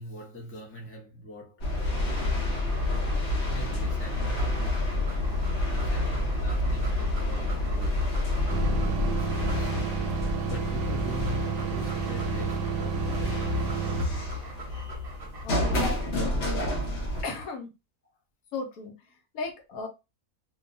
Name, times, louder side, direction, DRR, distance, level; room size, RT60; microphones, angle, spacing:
voice 1, 0.0-1.7 3.5-4.9 5.2-8.0 8.7-9.8 10.4-13.7 14.0-14.1, equal, 15° left, 0.4 m, -43 dB
sound 1, 1.6-17.2, left 2 dB, 55° left, 0.9 m, -29 dB
Dog, 1.9-10.1 10.6-16.0, right 3 dB, 45° right, 0.9 m, -46 dB
sound 2, 8.5-14.1, right 7 dB, 75° right, 1.0 m, -31 dB
voice 2, 15.4-16.4 17.2-17.7 18.5-19.9, left 3 dB, 75° left, 1.1 m, -36 dB
2.6 x 2.2 x 2.6 m
omnidirectional pair, 1.5 m